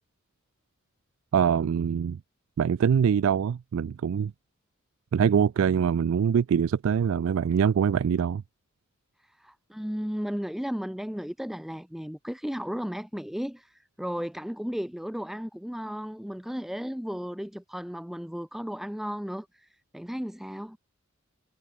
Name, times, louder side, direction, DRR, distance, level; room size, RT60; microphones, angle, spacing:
voice 1, 1.3-2.2 2.6-4.3 5.1-8.4, right 7 dB, 70° right, 0.3 m, -24 dB
voice 2, 9.2-20.8, equal, ahead, 0.4 m, -35 dB
head